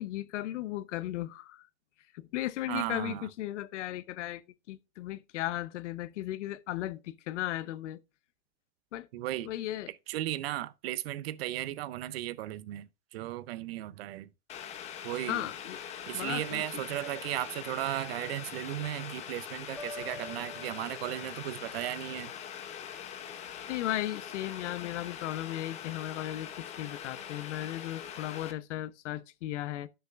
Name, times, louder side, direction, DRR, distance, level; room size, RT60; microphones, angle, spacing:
voice 1, 0.0-1.7 2.1-8.0 8.9-9.1 9.4-9.9 15.3-15.8 16.1-16.8 20.1-20.2 23.7-29.9, left 14 dB, 50° left, 0.9 m, -36 dB
voice 2, 2.7-3.3 9.1-9.5 10.1-14.3 15.0-15.4 16.1-22.3, right 14 dB, 45° right, 0.7 m, -36 dB
Boiling, 14.5-28.5, left 9 dB, 15° left, 0.7 m, -43 dB
sound 1, 19.8-21.7, left 1 dB, ahead, 1.9 m, -46 dB
12.0 x 6.8 x 2.5 m
hypercardioid pair, 150°, 44 cm